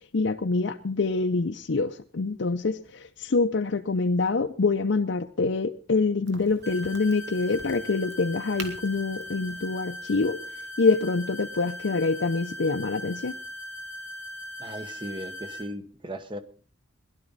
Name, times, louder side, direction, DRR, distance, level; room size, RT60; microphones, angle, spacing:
voice 1, 0.1-10.4 10.8-13.3, left 3 dB, 70° left, 4 dB, 0.6 m, -25 dB
Crack, 6.3-11.7, right 3 dB, 70° right, 2.2 m, -47 dB
sound 1, 6.6-15.6, left 1 dB, 55° right, 4.7 m, -39 dB
voice 2, 14.6-16.4, equal, 25° right, 10 dB, 1.1 m, -37 dB
20.5 x 12.0 x 4.0 m, 0.41 s
head